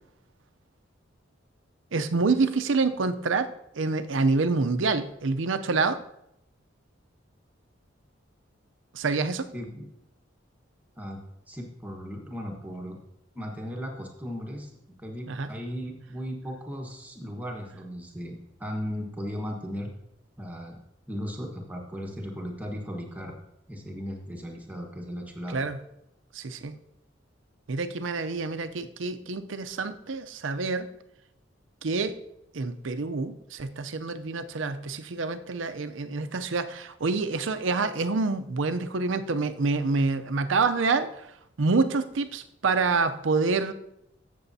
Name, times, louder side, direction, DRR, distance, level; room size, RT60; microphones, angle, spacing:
voice 1, 1.9-6.0 8.9-9.4 15.3-15.5 25.5-25.8 26.3-26.8 27.7-30.9 31.8-32.2 32.5-41.3 41.6-43.7, right 4 dB, 75° right, 9 dB, 0.6 m, -27 dB
voice 2, 9.5-9.8 11.0-11.2 11.5-13.0 13.3-14.7 15.0-19.9 20.4-20.8 21.1-23.4 23.7-25.6, equal, 10° right, 0 dB, 1.3 m, -36 dB
15.0 x 6.9 x 2.7 m, 0.82 s
head